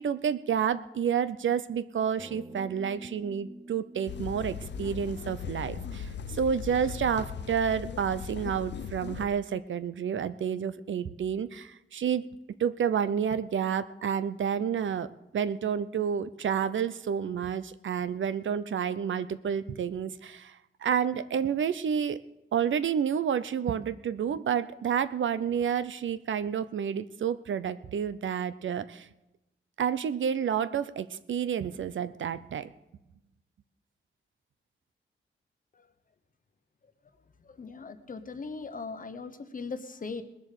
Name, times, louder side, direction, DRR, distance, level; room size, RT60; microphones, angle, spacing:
voice 1, 0.0-12.3 12.6-15.1 15.3-22.2 22.5-29.1 29.8-32.7, right 8 dB, 65° right, 14 dB, 0.6 m, -30 dB
sound 1, 2.2-6.8, right 1 dB, 20° right, 0.6 m, -49 dB
sound 2, 4.1-9.2, left 7 dB, 55° left, 0.5 m, -38 dB
voice 2, 37.2-40.2, left 4 dB, 40° left, 9 dB, 1.0 m, -39 dB
20.0 x 7.5 x 6.7 m, 0.96 s
wide cardioid pair, 160°, 21 cm